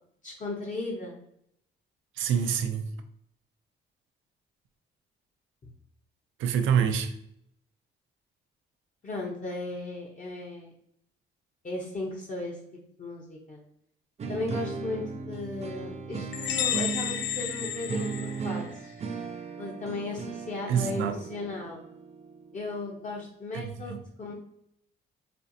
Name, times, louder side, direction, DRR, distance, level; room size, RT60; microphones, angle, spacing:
voice 1, 0.2-1.2 9.0-10.7 11.6-12.6 13.0-13.6 14.3-19.0 19.6-21.8 22.5-24.3, left 2 dB, 40° left, -2 dB, 0.8 m, -36 dB
voice 2, 2.2-2.9 6.4-7.1 20.7-21.1 23.5-24.0, right 8 dB, 85° right, 8 dB, 0.5 m, -26 dB
sound 1, 14.2-23.1, right 5 dB, 35° right, 0.5 m, -37 dB
sound 2, 16.3-18.9, left 10 dB, 65° left, 0.5 m, -32 dB
4.3 x 2.4 x 2.7 m, 0.73 s
cardioid pair, 90°, 20 cm